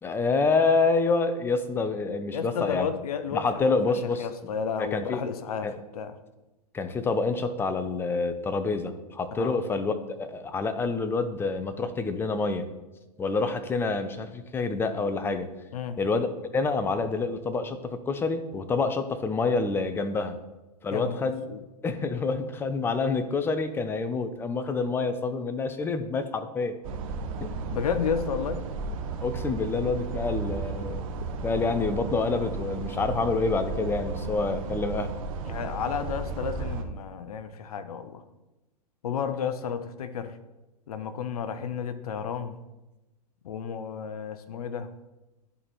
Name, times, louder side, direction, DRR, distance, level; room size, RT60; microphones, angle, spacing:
voice 1, 0.0-2.9 3.3-4.5 4.8-5.2 5.6-5.7 6.7-12.7 13.2-15.5 16.0-16.3 16.5-20.3 20.8-21.4 21.8-26.8 27.4-27.8 29.2-31.0 31.4-35.1, left 4 dB, 10° left, 10 dB, 0.4 m, -27 dB
voice 2, 2.3-6.2 9.4-9.6 15.7-16.0 20.9-21.6 27.7-28.6 35.4-38.2 39.0-40.3 40.9-42.6 43.4-44.9, left 7 dB, 60° left, 12 dB, 0.6 m, -32 dB
sound 1, 26.8-36.8, right 4 dB, 55° right, 0.8 m, -34 dB
11.0 x 4.1 x 3.0 m, 1.0 s
figure-of-eight pair, 105°, 21 cm